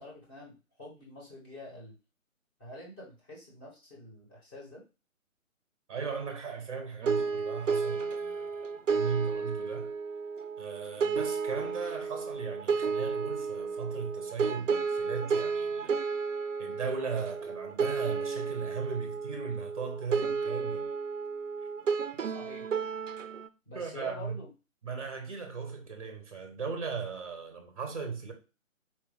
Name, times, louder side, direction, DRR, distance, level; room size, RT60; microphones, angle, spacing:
voice 1, 0.0-1.9 2.6-4.8 22.3-22.6 23.6-24.5, left 1 dB, 15° left, 1.5 m, -46 dB
voice 2, 5.9-9.9 10.6-16.0 16.6-20.9 21.6-21.7 23.7-24.4 24.8-28.3, right 5 dB, 25° right, 0.8 m, -37 dB
sound 1, 7.0-23.5, right 5 dB, 65° right, 0.5 m, -32 dB
4.3 x 2.9 x 3.9 m
figure-of-eight pair, 145°, 41 cm